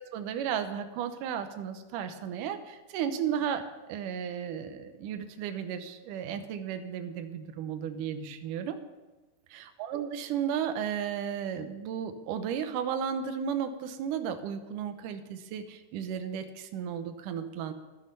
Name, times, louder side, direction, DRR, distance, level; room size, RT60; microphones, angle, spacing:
voice 1, 0.1-8.8 9.5-17.7, right 8 dB, 70° right, 8 dB, 2.2 m, -34 dB
12.0 x 10.0 x 5.5 m, 1.2 s
omnidirectional pair, 4.2 m